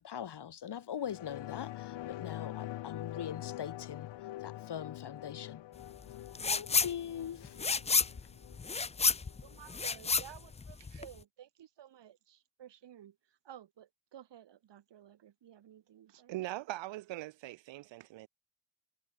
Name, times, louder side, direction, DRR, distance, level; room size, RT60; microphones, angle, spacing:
voice 1, 0.0-4.1 4.4-5.6 6.5-7.7, left 9 dB, 65° left, 4.5 m, -41 dB
sound 1, 1.0-10.0 10.4-10.5, left 15 dB, 85° left, 3.3 m, -45 dB
sound 2, 6.3-6.9 7.2-11.2, left 4 dB, 15° left, 0.4 m, -30 dB
voice 2, 9.4-13.2 13.4-16.3, right 10 dB, 70° right, 4.0 m, -54 dB
voice 3, 16.3-18.3, right 17 dB, 90° right, 1.9 m, -41 dB
supercardioid pair, 55°, 43 cm